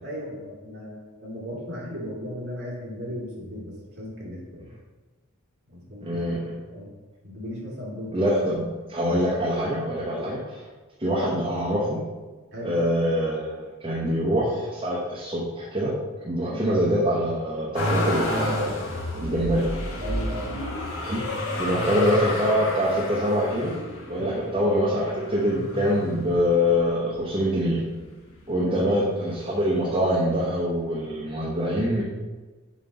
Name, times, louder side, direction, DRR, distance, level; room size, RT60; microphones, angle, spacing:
voice 1, 0.0-4.8 5.7-6.2 6.7-6.9 7.2-8.3 10.1-10.3 12.5-12.7 16.4-16.6 19.1-19.5 20.0-20.5 24.2-24.4 28.5-28.8, equal, 50° right, -4 dB, 2.1 m, -36 dB
voice 2, 6.0-6.5 8.1-8.6 8.9-10.4 11.0-12.0 12.6-15.9 16.2-18.9 19.2-19.6 21.0-21.2 21.6-23.7 24.1-27.8 28.5-32.0, equal, 25° right, -7 dB, 0.9 m, -24 dB
Motor vehicle (road), 17.7-26.9 27.5-28.3 28.6-29.7 30.7-30.8, left 1 dB, 65° left, 1.4 m, -31 dB
7.2 x 3.0 x 5.3 m, 1.3 s
head